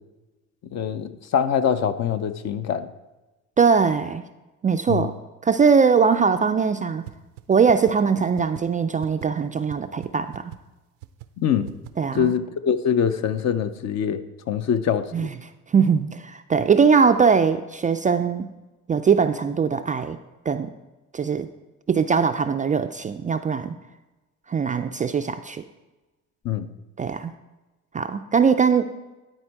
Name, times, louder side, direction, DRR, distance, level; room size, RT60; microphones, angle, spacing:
voice 1, 0.7-2.9 4.9-5.1 11.4-11.7 12.1-15.3 26.4-26.7, left 8 dB, 50° left, 11 dB, 0.7 m, -24 dB
voice 2, 3.6-4.2 4.6-5.1 5.4-7.0 7.5-10.5 12.0-12.3 15.1-15.3 15.7-18.5 18.9-20.2 20.5-20.7 21.1-21.5 21.9-23.7 24.5-25.6 27.0-27.3 27.9-28.9, right 6 dB, 25° right, 8 dB, 0.3 m, -21 dB
sound 1, 7.1-7.2 7.4-7.5 7.7-7.9 8.4-8.6 9.0-9.3 9.7-9.8 10.0-10.1 10.3-10.6 11.0-11.3 11.7-11.9, right 20 dB, 90° right, 0.6 m, -38 dB
12.0 x 4.4 x 4.6 m, 1.1 s
supercardioid pair, 75°, 36 cm